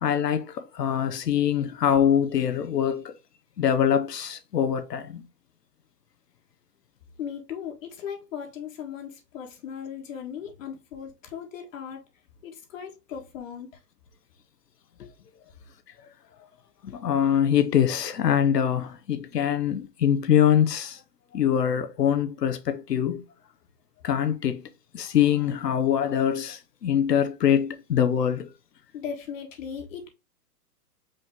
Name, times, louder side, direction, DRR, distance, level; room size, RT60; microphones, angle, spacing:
voice 1, 0.0-3.2 3.6-5.3 15.0-15.1 16.8-21.0 21.3-23.2 24.0-24.6 24.9-28.5, left 9 dB, 90° left, 0.9 m, -24 dB
voice 2, 7.2-12.0 12.4-13.7 28.9-30.1, left 8 dB, 55° left, 1.4 m, -37 dB
5.2 x 2.9 x 3.5 m
hypercardioid pair, 140°, 47 cm